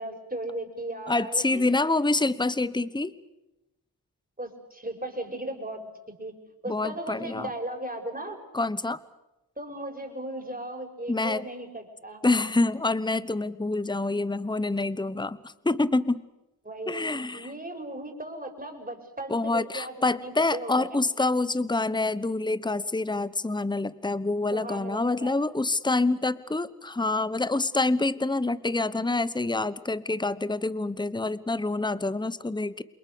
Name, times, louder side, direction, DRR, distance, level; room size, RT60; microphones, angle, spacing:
voice 1, 0.0-1.7 4.4-5.8 6.2-6.3 6.6-8.4 9.6-12.2 16.6-20.9 24.5-25.3, right 1 dB, 20° right, 3 dB, 5.9 m, -36 dB
voice 2, 1.1-3.1 6.7-7.5 8.5-9.0 11.1-11.5 12.2-16.2 16.9-17.5 19.3-32.8, left 2 dB, 10° left, 16 dB, 1.1 m, -27 dB
28.5 x 22.0 x 7.0 m, 0.96 s
cardioid pair, 50°, 38 cm